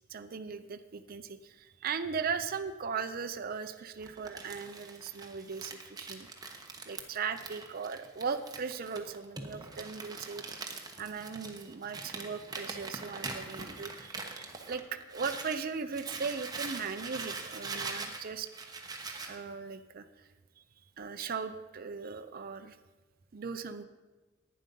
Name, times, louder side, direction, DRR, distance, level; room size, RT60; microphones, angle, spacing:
voice 1, 0.1-6.3 6.9-10.5 11.0-18.5 19.2-20.3 21.0-22.8 23.3-23.8, right 5 dB, 45° right, 8 dB, 0.5 m, -38 dB
Crumpling crinkling, 4.0-15.6 15.9-19.4, right 3 dB, 20° right, 1.0 m, -42 dB
11.0 x 9.5 x 5.4 m, 1.2 s
head